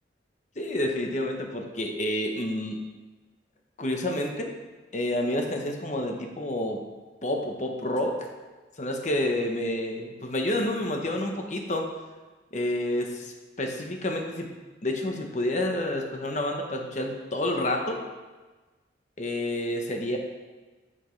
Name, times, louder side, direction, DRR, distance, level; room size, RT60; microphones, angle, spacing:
voice 1, 0.6-2.8 3.8-4.6 4.9-6.8 7.2-8.3 8.8-11.9 12.5-14.5 14.8-18.0 19.2-20.2, left 1 dB, 40° left, 2 dB, 1.0 m, -29 dB
10.5 x 6.2 x 3.2 m, 1.3 s
head